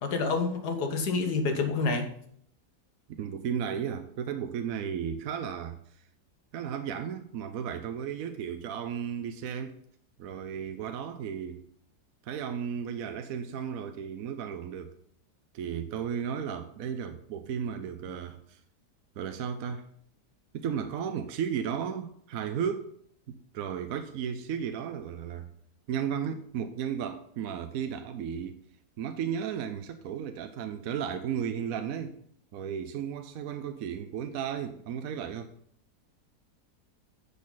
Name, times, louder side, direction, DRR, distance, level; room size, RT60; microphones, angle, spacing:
voice 1, 0.0-2.1, left 4 dB, 75° left, 5 dB, 1.8 m, -28 dB
voice 2, 3.1-5.8 6.5-9.8 10.2-11.7 12.2-15.0 15.5-18.6 19.2-19.8 20.5-22.9 23.3-25.5 25.9-28.6 29.0-32.2 32.5-35.5, right 8 dB, 65° right, 8 dB, 1.0 m, -34 dB
10.5 x 6.8 x 3.9 m, 0.65 s
omnidirectional pair, 1.8 m